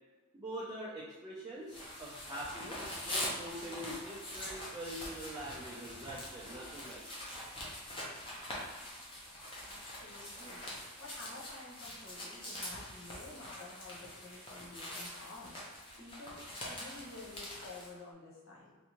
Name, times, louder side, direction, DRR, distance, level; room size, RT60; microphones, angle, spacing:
voice 1, 0.3-7.1, right 1 dB, 15° right, -7 dB, 0.4 m, -44 dB
sound 1, 1.7-17.9, left 1 dB, 25° left, 0.7 m, -44 dB
voice 2, 9.6-15.5 16.0-18.7, left 2 dB, 60° left, -4 dB, 0.9 m, -51 dB
3.4 x 2.6 x 2.9 m, 1.2 s
head